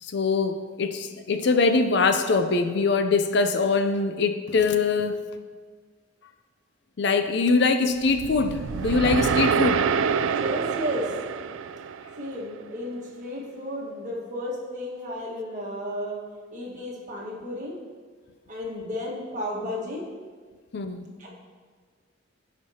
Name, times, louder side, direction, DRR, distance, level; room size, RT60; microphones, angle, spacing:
voice 1, 0.0-5.2 7.0-9.9 20.7-21.0, left 4 dB, 60° left, 8 dB, 0.5 m, -23 dB
sound 1, 8.0-12.4, right 6 dB, 80° right, 0.3 m, -26 dB
voice 2, 10.2-11.1 12.2-17.8 18.5-20.1 21.2-21.3, equal, 40° right, -3 dB, 1.5 m, -33 dB
15.0 x 5.2 x 2.8 m, 1.5 s
head